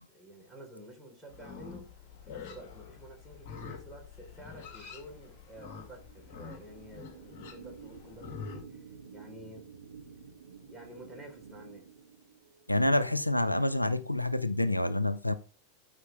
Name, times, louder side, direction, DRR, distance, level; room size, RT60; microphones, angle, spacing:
voice 1, 0.1-1.8 2.2-9.7 10.7-11.9, right 1 dB, 5° right, 4.0 m, -50 dB
Livestock farm animals working animals, 1.3-8.6, left 5 dB, 40° left, 2.4 m, -46 dB
sound 1, 4.0-12.7, right 6 dB, 70° right, 1.5 m, -52 dB
voice 2, 12.7-15.3, left 1 dB, 85° left, 0.5 m, -27 dB
12.5 x 5.1 x 3.4 m
figure-of-eight pair, 90°, 0 cm